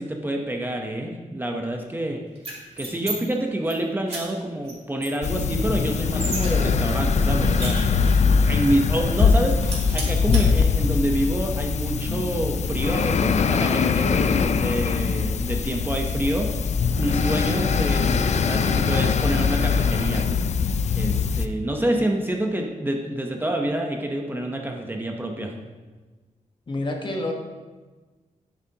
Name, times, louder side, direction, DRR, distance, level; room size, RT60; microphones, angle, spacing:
voice 1, 0.0-2.2 2.8-7.9 8.2-9.6 9.9-16.5 17.0-20.2 20.9-25.5, right 1 dB, 15° right, 2 dB, 0.8 m, -27 dB
sound 1, 2.4-3.2 3.5-3.7 4.1-4.2 4.6-4.7 5.0-6.5 6.9-8.3 8.7-8.8 9.1-9.4 9.6-10.4, right 2 dB, 50° right, 2.8 m, -33 dB
sound 2, 5.2-21.5, left 5 dB, 55° left, 0.4 m, -22 dB
voice 2, 26.7-27.3, left 2 dB, 35° left, 2 dB, 1.2 m, -28 dB
9.8 x 8.9 x 2.9 m, 1.3 s
wide cardioid pair, 120°, 14 cm